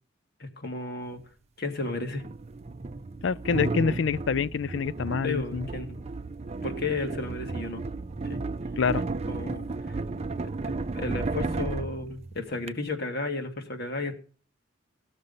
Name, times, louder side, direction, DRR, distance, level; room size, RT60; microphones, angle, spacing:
voice 1, 0.4-1.2 1.6-2.2 5.2-6.0 6.6-7.8 8.2-8.4 9.3-10.0 10.9-14.2, left 2 dB, 60° left, 2.2 m, -33 dB
sound 1, 1.1-1.2 2.1-12.7, right 3 dB, 35° right, 0.5 m, -33 dB
voice 2, 3.2-5.7 8.8-9.0, left 5 dB, 75° left, 0.4 m, -26 dB
17.5 x 6.7 x 5.4 m
head